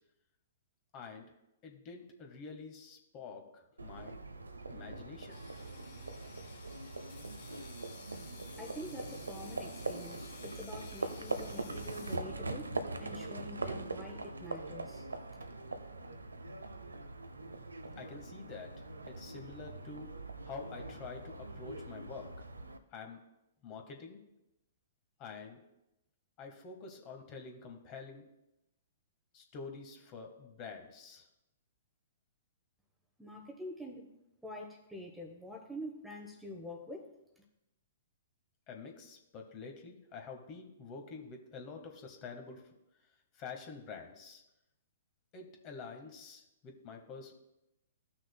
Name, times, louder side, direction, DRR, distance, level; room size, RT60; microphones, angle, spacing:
voice 1, 0.9-1.3 1.6-4.2 4.7-5.4 18.0-20.1 20.4-22.3 22.9-23.2 23.6-24.2 25.2-25.6 26.4-28.2 29.3-31.3 38.7-42.6 43.3-44.4 45.3-47.3, left 4 dB, 35° left, 3 dB, 1.4 m, -47 dB
Livestock farm animals working animals, 3.8-22.8, right 2 dB, 90° right, 0.6 m, -42 dB
sound 1, 5.3-12.2, left 5 dB, 65° left, 1.9 m, -55 dB
voice 2, 8.6-15.1 15.3-15.5 33.2-34.1 34.4-37.1 37.4-37.5, left 1 dB, 5° right, 2 dB, 1.0 m, -46 dB
15.0 x 6.0 x 2.2 m, 0.90 s
hypercardioid pair, 120°, 0 cm